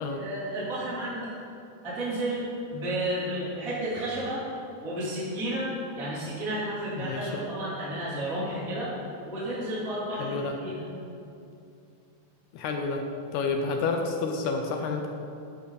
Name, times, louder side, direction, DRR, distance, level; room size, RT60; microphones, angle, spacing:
voice 1, 0.1-1.4 1.8-4.5 4.8-8.9 9.2-10.9, right 1 dB, 20° right, -9 dB, 3.4 m, -32 dB
voice 2, 7.0-7.4 10.1-10.6 12.5-13.1 13.3-15.1, left 4 dB, 75° left, 3 dB, 2.5 m, -29 dB
15.5 x 11.0 x 4.2 m, 2.6 s
omnidirectional pair, 5.4 m